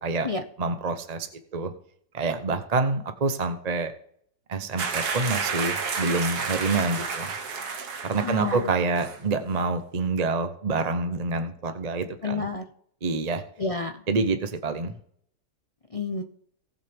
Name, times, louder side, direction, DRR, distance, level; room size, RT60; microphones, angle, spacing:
voice 1, 0.6-1.7 2.1-3.9 4.5-7.3 8.0-12.5 13.0-13.4 14.1-14.9, right 3 dB, 35° right, 7 dB, 0.6 m, -27 dB
sound 1, 4.8-8.7 9.0-9.2, right 5 dB, 60° right, 1.8 m, -31 dB
voice 2, 8.2-8.7 12.2-12.6 13.6-14.0 15.9-16.2, left 4 dB, 55° left, 5 dB, 0.3 m, -29 dB
18.5 x 6.4 x 3.5 m, 0.64 s
omnidirectional pair, 1.9 m